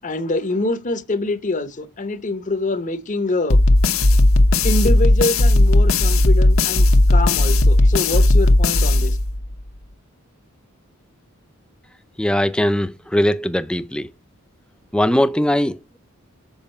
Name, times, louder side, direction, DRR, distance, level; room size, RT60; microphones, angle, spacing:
voice 1, 0.0-3.6 4.6-9.2, left 2 dB, 35° left, 0.8 m, -25 dB
sound 1, 3.5-9.6, left 1 dB, 65° left, 0.9 m, -15 dB
voice 2, 12.2-14.1 14.9-16.0, left 1 dB, 5° left, 0.4 m, -20 dB
7.2 x 4.7 x 4.3 m
head